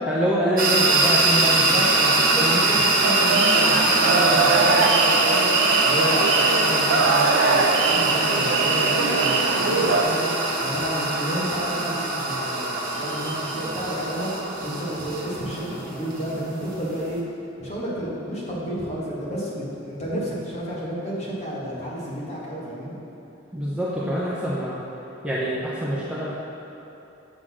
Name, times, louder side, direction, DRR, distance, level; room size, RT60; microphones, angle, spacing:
voice 1, 0.1-1.6 1.9-2.1 2.3-2.8 13.4-13.5 23.5-24.8 25.2-26.3, equal, 5° right, -7 dB, 0.7 m, -25 dB
sound 1, 0.6-17.2, right 2 dB, 45° right, 1.3 m, -23 dB
voice 2, 1.3-5.6 5.8-10.3 10.6-14.3 14.6-17.2 17.6-22.9, equal, 35° left, -6 dB, 1.7 m, -31 dB
sound 2, 3.0-10.0, right 3 dB, 70° right, 0.6 m, -22 dB
7.7 x 4.0 x 6.2 m, 3.0 s
head